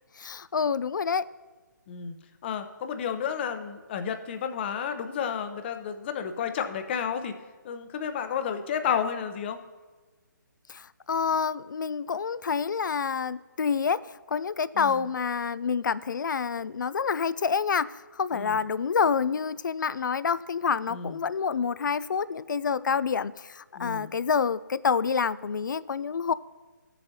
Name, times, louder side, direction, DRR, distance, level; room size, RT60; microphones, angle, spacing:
voice 1, 0.2-1.2 10.7-14.0 14.3-17.9 18.1-26.3, left 6 dB, 70° left, 18 dB, 0.4 m, -27 dB
voice 2, 2.4-7.3 7.6-9.6 14.7-15.1 18.3-18.6 20.9-21.2 23.8-24.1, left 7 dB, 30° left, 8 dB, 0.7 m, -31 dB
14.5 x 7.0 x 2.8 m, 1.3 s
figure-of-eight pair, 145°, 11 cm